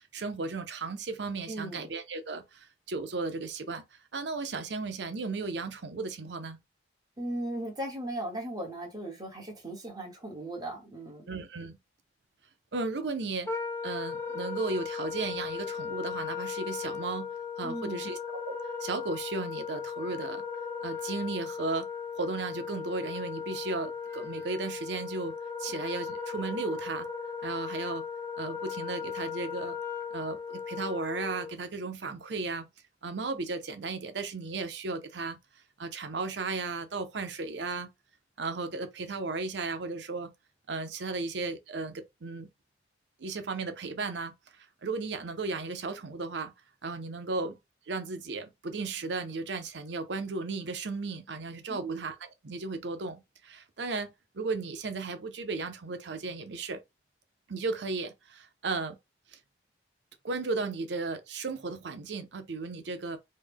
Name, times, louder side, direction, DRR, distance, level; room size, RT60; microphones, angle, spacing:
voice 1, 0.0-6.6 11.3-11.8 12.7-13.5 13.8-18.6 18.8-20.4 20.8-21.9 22.2-27.1 27.4-28.1 28.4-29.8 30.1-32.7 33.0-35.4 35.8-37.9 38.4-40.3 40.7-42.5 43.2-44.3 44.6-46.5 46.8-47.6 47.9-52.2 52.4-56.8 57.5-59.0 60.2-63.2, right 3 dB, 75° right, 0.6 m, -35 dB
voice 2, 1.5-1.9 7.2-11.3 17.6-18.1 51.7-52.0, right 1 dB, 20° right, 1.2 m, -37 dB
Wind instrument woodwind instrument, 13.5-31.6, left 6 dB, 15° left, 0.4 m, -37 dB
3.2 x 2.1 x 3.5 m
head